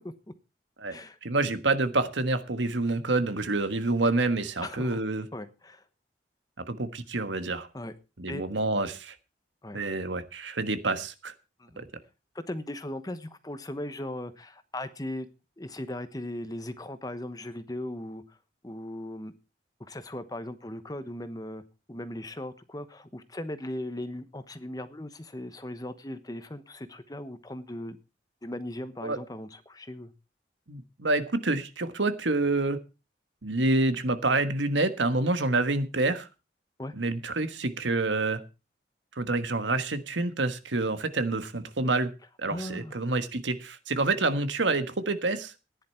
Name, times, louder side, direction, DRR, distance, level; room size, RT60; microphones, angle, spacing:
voice 1, 0.8-5.3 6.7-7.7 8.2-9.1 9.7-11.3 11.8-11.9 29.0-29.2 30.7-32.8 33.4-36.3 36.9-38.4 39.2-42.1 42.4-45.5, right 2 dB, 85° right, 10 dB, 1.4 m, -27 dB
voice 2, 4.6-5.0 5.3-5.8 7.7-7.9 8.3-8.4 9.6-9.8 11.6-11.8 12.3-15.3 15.6-18.4 18.6-19.3 19.8-21.6 21.9-28.0 28.4-30.1 36.8-36.9 42.5-42.9, left 1 dB, 20° left, 11 dB, 1.0 m, -38 dB
14.5 x 10.5 x 4.4 m, 0.30 s
head